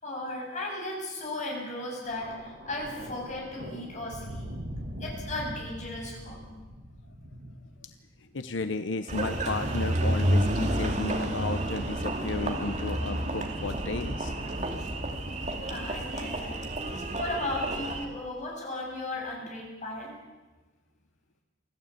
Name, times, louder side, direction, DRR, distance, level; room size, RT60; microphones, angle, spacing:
voice 1, 0.0-4.5 5.0-6.6 15.3-15.4 15.6-16.6 17.2-20.2, left 2 dB, 40° left, -1 dB, 7.4 m, -36 dB
Thunder, 2.0-8.4 9.4-9.6, equal, 60° right, 7.1 m, -42 dB
voice 2, 8.3-14.3, left 3 dB, 85° left, 9 dB, 0.9 m, -33 dB
Engine, 9.1-18.0, right 1 dB, 40° right, 2.5 m, -30 dB
25.0 x 15.0 x 8.4 m, 1.2 s
head